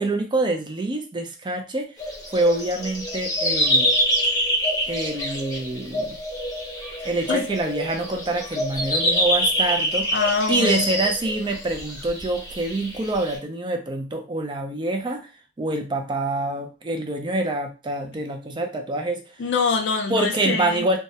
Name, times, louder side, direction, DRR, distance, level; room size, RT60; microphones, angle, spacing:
voice 1, 0.0-1.9 2.3-3.9 4.9-6.2 7.0-10.1 10.5-15.3 15.6-19.3 20.1-21.0, right 2 dB, 25° right, 4 dB, 0.4 m, -26 dB
sound 1, 2.0-13.4, equal, 20° left, 0.6 m, -26 dB
voice 2, 10.1-10.9 19.4-20.9, left 4 dB, 75° left, 5 dB, 0.4 m, -24 dB
2.2 x 2.0 x 2.7 m, 0.31 s
head